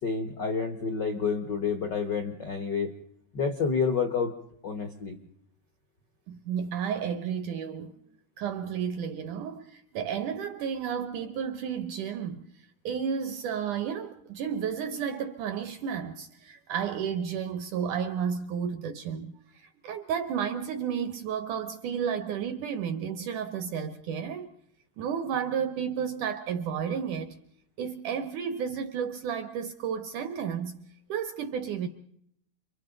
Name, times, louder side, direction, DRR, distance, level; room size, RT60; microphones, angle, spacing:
voice 1, 0.0-2.9 3.3-4.3 4.6-5.2, left 5 dB, 75° left, 1.0 m, -29 dB
voice 2, 6.3-7.9 8.4-12.5 12.9-19.3 19.6-24.5 25.0-27.4 27.8-31.9, right 7 dB, 75° right, 1.9 m, -32 dB
30.0 x 24.0 x 3.9 m
omnidirectional pair, 4.6 m